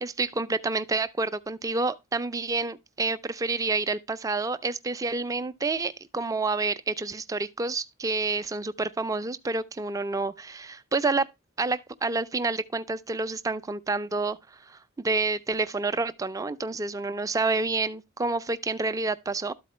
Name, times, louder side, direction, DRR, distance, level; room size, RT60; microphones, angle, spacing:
voice 1, 0.0-11.3 11.6-14.4 14.7-19.5, right 3 dB, 15° right, 0.3 m, -28 dB
12.5 x 4.3 x 3.0 m
head